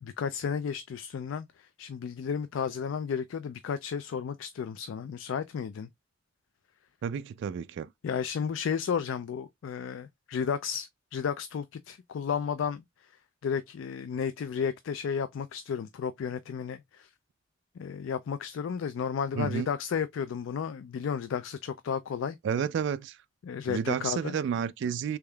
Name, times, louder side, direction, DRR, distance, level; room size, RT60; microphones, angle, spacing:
voice 1, 0.0-5.9 8.0-12.8 13.4-17.1 17.8-22.4 23.4-24.4, left 7 dB, 75° left, 0.3 m, -33 dB
voice 2, 7.0-7.9 19.3-19.7 22.4-23.2 23.7-25.2, right 7 dB, 65° right, 0.3 m, -31 dB
3.5 x 3.4 x 2.2 m
head